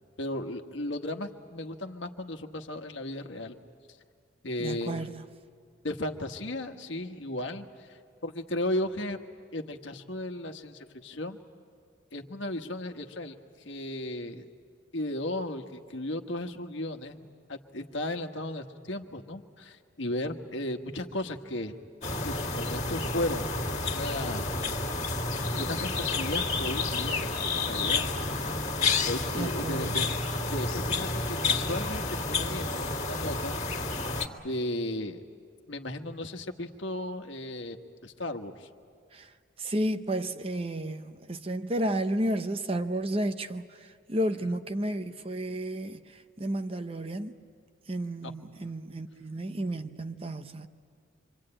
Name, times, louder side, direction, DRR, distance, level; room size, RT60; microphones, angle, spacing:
voice 1, 0.2-3.6 4.4-5.1 5.8-9.2 9.5-11.4 12.1-14.4 14.9-21.7 22.2-23.5 23.8-24.4 25.5-28.1 29.0-30.1 30.5-33.9 34.4-35.2 35.7-37.8 38.0-38.7 48.2-48.3 48.6-48.7, left 1 dB, 75° left, 1.3 m, -35 dB
voice 2, 4.6-5.3 29.3-30.1 39.1-47.4 47.9-50.7, right 1 dB, 30° right, 0.7 m, -32 dB
sound 1, 22.0-34.3, left 3 dB, 35° left, 2.0 m, -30 dB
26.0 x 25.0 x 8.9 m
head